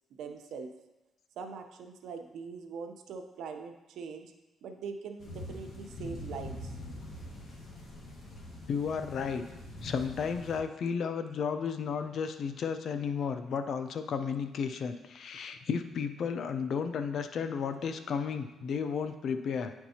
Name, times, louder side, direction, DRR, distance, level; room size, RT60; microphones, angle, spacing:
voice 1, 0.1-0.7 1.4-4.3 4.6-6.8, right 5 dB, 75° right, 6 dB, 0.6 m, -42 dB
sound 1, 5.2-10.6, left 1 dB, 45° left, 1.6 m, -44 dB
voice 2, 8.7-9.4 9.8-19.7, left 6 dB, 60° left, 8 dB, 0.5 m, -33 dB
9.6 x 4.5 x 2.8 m, 1.1 s
cardioid pair, 90°, 0 cm